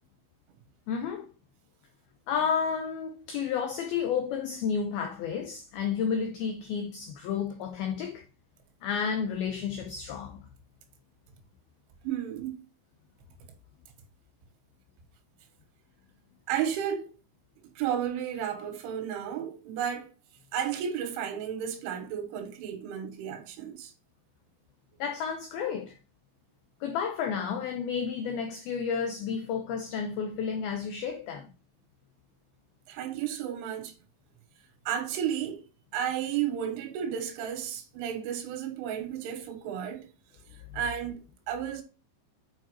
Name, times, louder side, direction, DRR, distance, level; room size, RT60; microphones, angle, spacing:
voice 1, 0.9-1.3 2.3-8.2 8.8-10.5 25.0-26.0 26.8-31.5, left 6 dB, 85° left, 2.1 m, -31 dB
voice 2, 12.0-12.7 16.5-17.1 17.8-20.1 20.5-23.9 32.9-33.9 34.9-35.6 35.9-40.1 40.7-41.8, right 9 dB, 90° right, 3.6 m, -33 dB
8.5 x 5.0 x 2.9 m
omnidirectional pair, 5.3 m